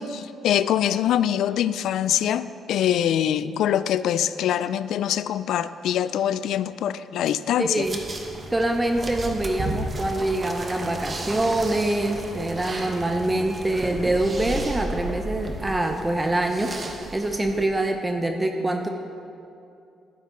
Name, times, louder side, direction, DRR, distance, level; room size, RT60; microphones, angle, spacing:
voice 1, 0.0-7.9, left 10 dB, 80° left, 0.3 m, -24 dB
voice 2, 7.6-8.0 8.5-18.9, right 1 dB, 15° right, 0.7 m, -25 dB
sound 1, 7.8-17.6, right 2 dB, 35° right, 1.2 m, -34 dB
12.0 x 9.7 x 3.9 m
cardioid pair, 90°, 0 cm